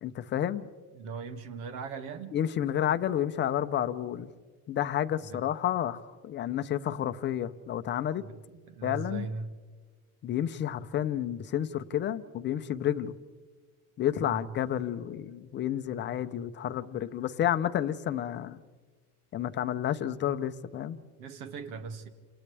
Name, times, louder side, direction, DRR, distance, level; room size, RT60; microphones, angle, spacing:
voice 1, 0.0-0.7 2.3-4.3 4.7-8.2 8.8-9.3 10.2-13.1 14.0-18.6 19.3-21.0, left 10 dB, 25° left, 11 dB, 0.6 m, -30 dB
voice 2, 0.9-2.4 5.2-5.4 8.2-9.5 14.2-14.5 21.2-22.1, right 4 dB, 80° right, 8 dB, 2.2 m, -39 dB
29.5 x 28.0 x 3.4 m, 1.4 s
cardioid pair, 155°, 42 cm